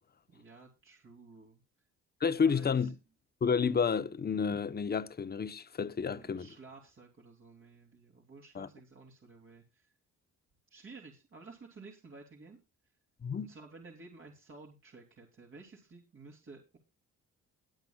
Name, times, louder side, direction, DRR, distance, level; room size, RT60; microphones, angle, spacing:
voice 1, 0.3-1.6 2.4-2.9 6.0-9.9 10.7-12.6 13.4-16.8, right 3 dB, 45° right, 3.3 m, -53 dB
voice 2, 2.2-2.9 3.4-6.5 8.5-8.7 13.2-13.5, left 6 dB, 30° left, 1.1 m, -30 dB
21.0 x 7.8 x 2.4 m
cardioid pair, 90°, 30 cm